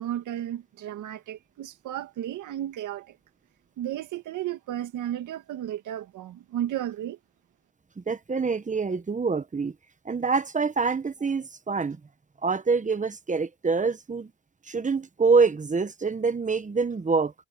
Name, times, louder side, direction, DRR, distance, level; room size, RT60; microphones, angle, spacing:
voice 1, 0.0-3.2 3.8-7.2, right 12 dB, 80° right, 2.0 m, -33 dB
voice 2, 8.0-9.7 10.0-12.0 12.4-14.3 14.7-17.3, right 4 dB, 25° right, 1.3 m, -25 dB
cardioid pair, 90°, 30 cm